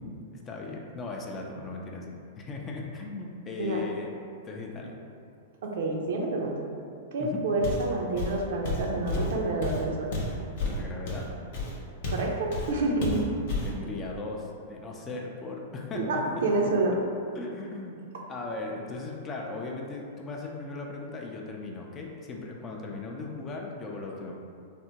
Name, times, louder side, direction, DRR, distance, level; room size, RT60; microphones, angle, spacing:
voice 1, 0.0-4.1 4.4-5.0 7.2-7.4 10.8-11.3 13.6-16.2 16.5-16.7 17.3-18.0 18.3-24.4, left 3 dB, 25° left, 0 dB, 0.4 m, -38 dB
voice 2, 5.6-6.5 7.1-10.1 12.1-13.2 15.9-16.2 16.4-16.9, right 2 dB, 70° right, 0 dB, 0.5 m, -28 dB
Walk footsteps, 7.6-7.9 8.2-12.3 12.5-12.7 13.0-13.7, left 2 dB, 65° left, 0.7 m, -31 dB
3.4 x 2.1 x 2.8 m, 2.4 s
hypercardioid pair, 110°, 0 cm